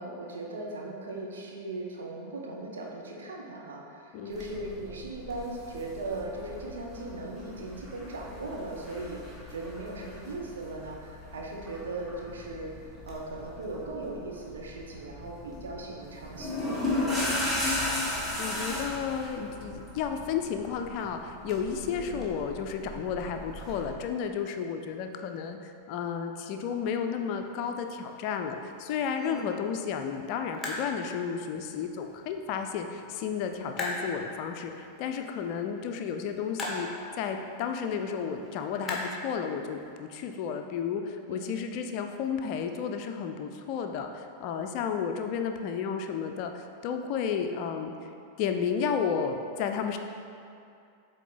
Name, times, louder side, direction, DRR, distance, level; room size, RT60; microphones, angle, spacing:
voice 1, 0.0-16.9 21.9-22.2 29.2-29.5 41.3-41.7, right 2 dB, 65° right, -1 dB, 0.9 m, -38 dB
sound 1, 4.3-23.9, left 1 dB, 5° right, 1.5 m, -37 dB
voice 2, 17.6-36.9 37.2-48.1 48.4-50.0, left 7 dB, 45° left, 5 dB, 0.4 m, -32 dB
sound 2, 26.7-39.9, left 2 dB, 15° left, 1.2 m, -42 dB
8.2 x 3.6 x 3.9 m, 2.5 s
figure-of-eight pair, 90°, 0 cm